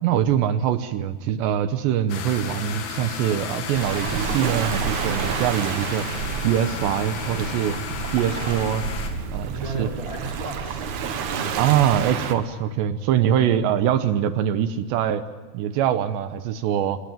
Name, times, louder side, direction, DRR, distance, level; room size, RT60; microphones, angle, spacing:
voice 1, 0.0-6.1 6.4-7.8 8.1-8.9 9.3-9.5 9.8-9.9 11.5-15.2 15.5-17.0, right 10 dB, 75° right, 11 dB, 2.9 m, -23 dB
sound 1, 2.1-9.1, left 5 dB, 75° left, 5.1 m, -33 dB
Waves surf, 3.7-12.3, right 6 dB, 60° right, 2.1 m, -30 dB
voice 2, 9.5-11.6, right 3 dB, 10° right, 0 dB, 2.6 m, -35 dB
26.0 x 20.5 x 9.0 m, 1.4 s
omnidirectional pair, 5.6 m